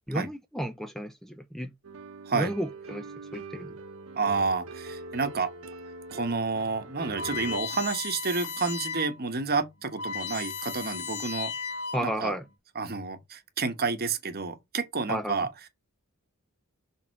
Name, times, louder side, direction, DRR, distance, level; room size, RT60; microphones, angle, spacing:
voice 1, 0.1-1.7 2.3-3.0 3.3-3.8 11.9-12.4 15.1-15.4, equal, ahead, 0.5 m, -32 dB
sound 1, 1.8-7.6, right 3 dB, 70° right, 1.1 m, -42 dB
voice 2, 4.1-5.5 6.1-11.5 12.0-12.3 12.7-15.7, right 4 dB, 45° right, 1.1 m, -30 dB
sound 2, 7.2-9.2 9.6-9.7 9.9-12.3, left 5 dB, 75° left, 1.9 m, -35 dB
6.4 x 3.7 x 4.1 m
head